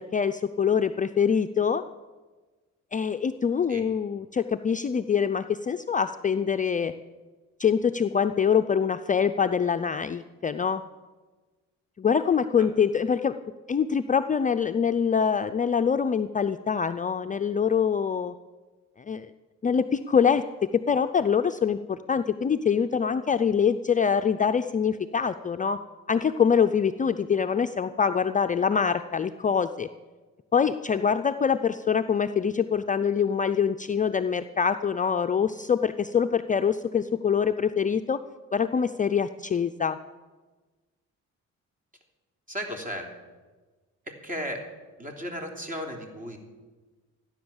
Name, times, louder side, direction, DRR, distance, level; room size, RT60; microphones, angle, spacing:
voice 1, 0.0-1.8 2.9-6.9 7.6-10.8 12.0-13.4 13.7-18.3 19.0-19.3 19.6-20.4 20.7-25.8 26.1-29.9 30.5-38.2 38.5-40.0, left 7 dB, 25° left, 8 dB, 0.4 m, -24 dB
voice 2, 42.5-43.0 44.2-44.6 45.0-46.4, equal, 25° right, 2 dB, 3.3 m, -34 dB
14.5 x 10.5 x 7.1 m, 1.3 s
cardioid pair, 90°, 30 cm